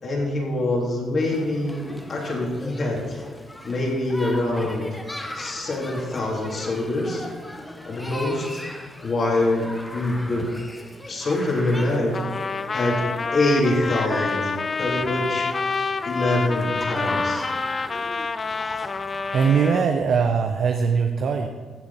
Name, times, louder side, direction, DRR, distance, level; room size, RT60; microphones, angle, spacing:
voice 1, 0.0-3.2 3.6-4.9 5.3-7.3 7.8-8.6 9.0-10.5 11.1-12.2 12.7-13.0 13.3-15.5 16.1-17.5, left 2 dB, 50° left, -4 dB, 3.6 m, -25 dB
sound 1, 1.2-19.8, left 1 dB, 10° left, 1.2 m, -38 dB
Trumpet, 12.1-19.8, left 4 dB, 35° left, 0.4 m, -28 dB
voice 2, 19.3-21.5, right 6 dB, 60° right, 4 dB, 0.8 m, -21 dB
15.0 x 6.8 x 4.3 m, 1.5 s
cardioid pair, 90°, 0 cm